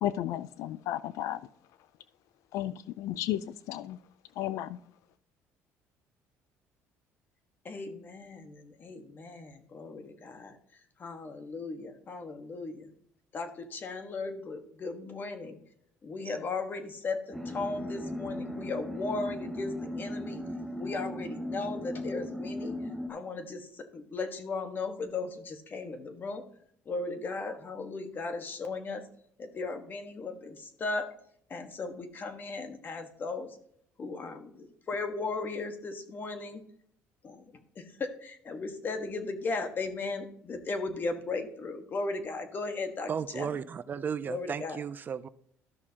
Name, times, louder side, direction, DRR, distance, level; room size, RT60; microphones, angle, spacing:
voice 1, 0.0-1.4 2.5-3.4 3.7-4.0 4.4-4.8, left 13 dB, 75° left, 16 dB, 0.3 m, -33 dB
voice 2, 7.6-10.6 11.0-12.8 13.3-15.6 16.0-20.4 20.8-22.7 23.1-26.4 26.9-29.0 29.4-31.1 31.5-33.5 34.0-36.6 37.2-37.4 37.8-43.1 43.4-43.5 44.3-44.8, left 3 dB, 40° left, 7 dB, 1.3 m, -36 dB
sound 1, 17.3-23.1, left 1 dB, 5° left, 1.0 m, -37 dB
voice 3, 43.1-45.3, right 7 dB, 35° right, 15 dB, 0.4 m, -35 dB
13.5 x 6.1 x 2.8 m, 0.67 s
cardioid pair, 110°, 5 cm